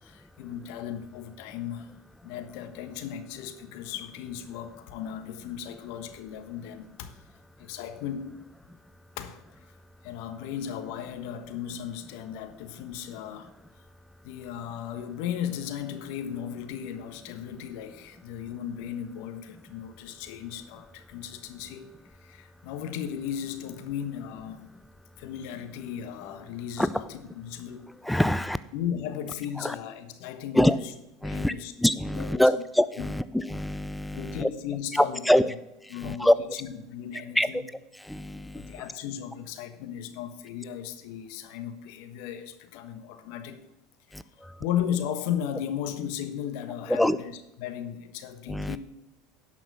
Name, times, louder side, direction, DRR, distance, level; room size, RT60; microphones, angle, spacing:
voice 1, 0.0-1.9 2.2-7.2 7.6-8.4 9.2-9.4 10.0-13.5 14.2-24.7 25.2-27.8 28.7-30.9 31.2-31.7 32.1-32.6 33.0-33.1 34.1-35.3 35.9-37.6 38.5-43.6 44.1-48.8, left 9 dB, 70° left, 9 dB, 1.3 m, -36 dB
voice 2, 28.0-28.6 29.6-29.7 30.5-30.8 31.2-31.5 31.8-34.5 34.9-35.5 36.0-36.3 37.4-37.6 38.1-38.5 46.9-47.2 48.5-48.8, left 1 dB, 5° left, 15 dB, 0.4 m, -24 dB
11.0 x 5.9 x 6.9 m, 0.91 s
hypercardioid pair, 75°, 0 cm